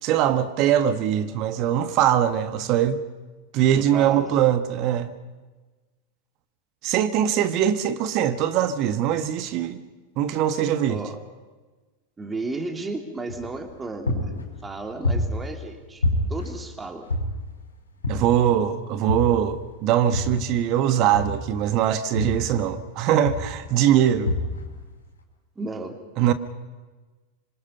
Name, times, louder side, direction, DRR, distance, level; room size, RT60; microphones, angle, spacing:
voice 1, 0.0-3.0 3.5-5.1 6.8-9.8 10.2-11.0 18.1-24.3 26.2-26.3, right 10 dB, 40° right, 1.4 m, -22 dB
voice 2, 3.7-4.3 10.9-11.2 12.2-14.3 14.6-16.0 16.3-17.1 23.9-24.0 25.5-26.0, right 3 dB, 15° right, 3.1 m, -34 dB
sound 1, 13.3-13.7 14.1-15.7 16.0-17.6 18.0-18.6 19.1-20.6 21.1-22.9 23.3-23.7 24.2-24.9, left 1 dB, 75° left, 5.1 m, -28 dB
26.0 x 26.0 x 5.6 m
figure-of-eight pair, 90°, 0 cm